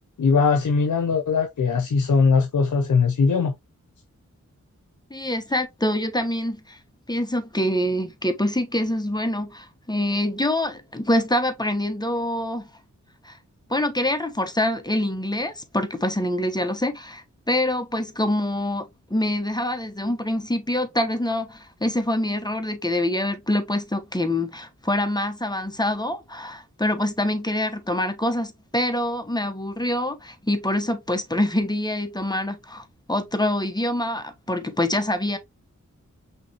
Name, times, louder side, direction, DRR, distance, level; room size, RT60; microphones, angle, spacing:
voice 1, 0.2-3.6, left 5 dB, 85° left, 0.7 m, -20 dB
voice 2, 5.1-6.8 7.1-12.7 13.2-13.4 13.7-18.8 19.1-35.4, left 1 dB, 15° left, 1.1 m, -25 dB
5.7 x 3.1 x 2.9 m
wide cardioid pair, 55°, 30 cm